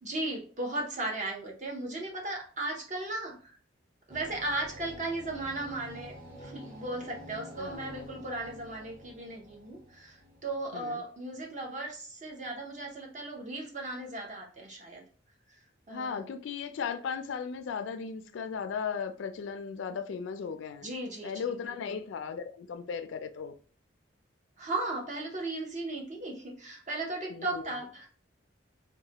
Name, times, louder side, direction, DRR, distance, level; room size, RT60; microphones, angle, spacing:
voice 1, 0.0-3.6 4.1-15.0 15.9-16.3 20.8-21.3 21.6-22.0 24.6-28.1, right 2 dB, 40° right, 0.7 m, -36 dB
sound 1, 4.1-11.5, equal, 15° right, 1.0 m, -49 dB
voice 2, 7.6-8.2 10.7-11.0 15.9-20.9 21.2-23.5 27.3-27.6, left 6 dB, 80° left, 0.3 m, -36 dB
3.1 x 2.1 x 2.8 m
head